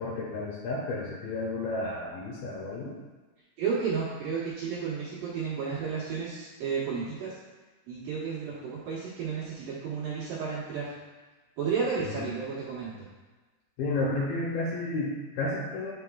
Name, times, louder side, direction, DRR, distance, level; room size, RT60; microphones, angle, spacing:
voice 1, 0.0-2.9 12.1-12.3 13.8-15.9, left 2 dB, 80° left, -4 dB, 2.2 m, -32 dB
voice 2, 3.6-7.4 7.9-10.9 11.6-12.9, right 6 dB, 65° right, -9 dB, 2.3 m, -32 dB
10.0 x 5.1 x 2.3 m, 1.3 s
omnidirectional pair, 5.2 m